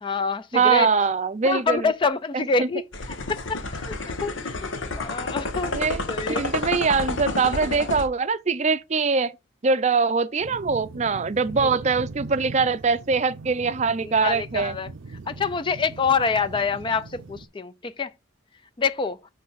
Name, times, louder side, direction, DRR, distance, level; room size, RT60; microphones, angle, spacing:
voice 1, 0.0-0.9 1.4-2.8 3.3-4.7 4.9-6.5 11.6-11.7 14.0-14.9 15.3-18.1 18.8-19.2, left 5 dB, 25° left, 0.4 m, -26 dB
voice 2, 0.5-1.9 2.3-2.7 5.7-6.0 6.3-9.3 9.6-14.7, right 4 dB, 35° right, 0.5 m, -23 dB
sound 1, 2.9-8.1, left 2 dB, 90° left, 1.0 m, -30 dB
sound 2, 10.4-17.5, right 3 dB, 85° right, 0.5 m, -40 dB
7.6 x 3.3 x 5.6 m
head